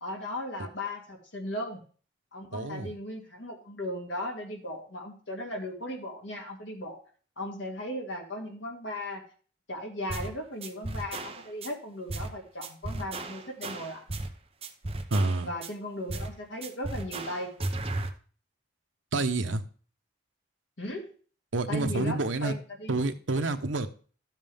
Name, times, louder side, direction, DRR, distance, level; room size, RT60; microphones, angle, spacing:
voice 1, 0.0-1.8 2.3-7.0 7.4-9.2 9.7-14.0 15.4-17.5 20.8-21.1 21.7-23.0, left 1 dB, 80° left, 1 dB, 2.5 m, -37 dB
voice 2, 2.5-2.9 15.1-15.5 19.1-19.6 21.5-22.5 22.9-23.9, right 2 dB, 90° right, 7 dB, 1.0 m, -28 dB
sound 1, 10.1-10.3 10.6-11.7 12.1-12.3 12.6-14.3 14.6-15.7 16.1-16.4 16.6-18.1, right 2 dB, 30° right, 0.8 m, -35 dB
13.0 x 7.4 x 3.6 m, 0.41 s
head